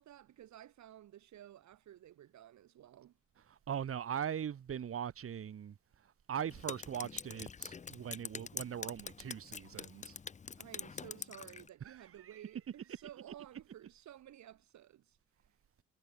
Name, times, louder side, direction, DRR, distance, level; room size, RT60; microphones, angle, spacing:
voice 1, 0.0-3.1 10.6-15.2, right 12 dB, 65° right, 1.5 m, -54 dB
voice 2, 3.5-5.8 6.3-10.2 11.8-12.4, right 9 dB, 50° right, 1.5 m, -40 dB
Drip, 6.5-11.7, left 5 dB, 25° left, 0.6 m, -45 dB
cardioid pair, 90°, 30 cm